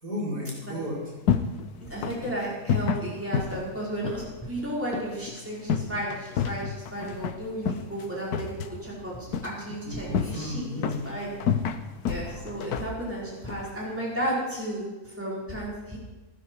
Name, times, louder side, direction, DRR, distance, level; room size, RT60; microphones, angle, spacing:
voice 1, 0.0-1.0 9.9-11.1 12.2-12.5, left 1 dB, 75° right, -6 dB, 6.2 m, -34 dB
sound 1, 0.8-14.3, left 7 dB, 85° left, 1.4 m, -32 dB
voice 2, 1.9-11.4 12.1-16.0, right 1 dB, 10° right, -5 dB, 5.0 m, -33 dB
17.0 x 15.0 x 4.8 m, 1.2 s
omnidirectional pair, 1.6 m